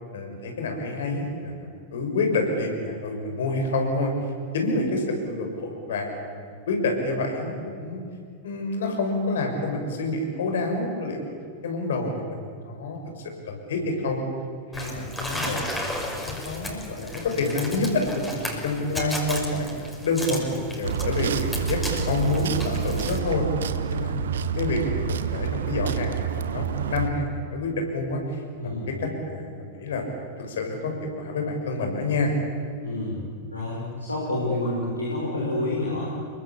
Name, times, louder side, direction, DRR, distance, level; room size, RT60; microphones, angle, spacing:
voice 1, 0.1-4.1 4.5-8.0 8.4-11.3 11.6-13.0 13.5-14.2 14.7-19.7 20.0-23.4 23.9-24.2 24.5-30.0 30.4-32.3, left 2 dB, 60° left, 3 dB, 6.3 m, -28 dB
sound 1, 14.7-23.2, left 1 dB, 5° left, 5.8 m, -35 dB
sound 2, 20.8-27.1, right 7 dB, 65° right, 1.3 m, -28 dB
voice 2, 28.6-28.9 32.8-33.2 33.5-36.1, left 1 dB, 85° left, -5 dB, 6.3 m, -28 dB
29.0 x 23.0 x 8.5 m, 2.2 s
figure-of-eight pair, 90°, 0 cm